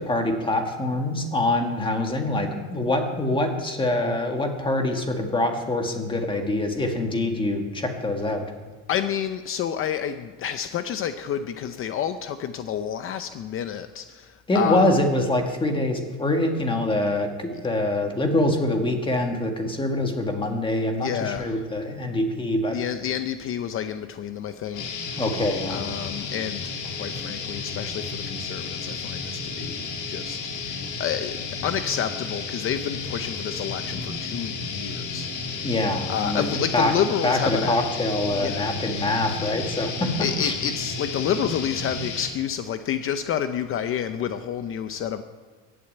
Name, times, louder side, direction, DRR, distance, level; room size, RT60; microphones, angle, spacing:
voice 1, 0.0-8.4 14.5-22.8 25.2-25.8 35.6-36.4 36.7-36.9 37.2-40.1 40.4-40.5, left 1 dB, 15° left, 4 dB, 1.7 m, -24 dB
voice 2, 8.9-15.0 17.5-17.6 21.0-21.7 22.7-25.2 25.7-35.3 35.6-35.7 36.1-37.8 38.4-38.7 40.2-45.2, left 9 dB, 35° left, 9 dB, 0.7 m, -29 dB
sound 1, 24.7-42.3, left 4 dB, 55° left, 3.2 m, -32 dB
15.0 x 8.8 x 9.1 m, 1.4 s
cardioid pair, 160°, 36 cm